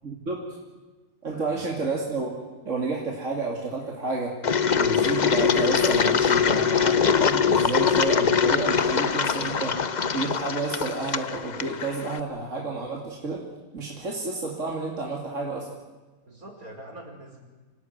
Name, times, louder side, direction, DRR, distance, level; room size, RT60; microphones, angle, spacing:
voice 1, 0.0-0.6 1.2-4.4 4.7-9.8 10.1-13.5 13.7-15.7, right 3 dB, 60° right, 0 dB, 3.1 m, -30 dB
voice 2, 1.3-1.7 16.2-17.4, right 1 dB, 80° right, 1 dB, 5.7 m, -44 dB
Engine, 4.4-12.2, left 6 dB, 35° left, 0.8 m, -23 dB
27.0 x 17.0 x 9.4 m, 1.3 s
omnidirectional pair, 1.5 m